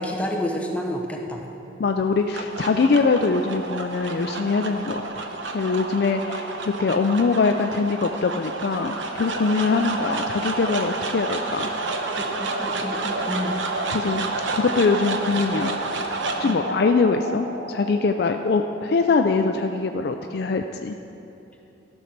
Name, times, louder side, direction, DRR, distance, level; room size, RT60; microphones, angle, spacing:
voice 1, 0.0-1.5 12.2-13.6 16.4-16.6, left 1 dB, 5° left, 0 dB, 0.8 m, -29 dB
voice 2, 1.8-5.3 5.5-11.7 13.9-14.3 14.5-15.7 16.4-21.0, left 4 dB, 55° left, 5 dB, 0.4 m, -23 dB
sound 1, 2.0-20.3, right 3 dB, 80° right, 0.9 m, -30 dB
14.0 x 6.4 x 5.9 m, 3.0 s
head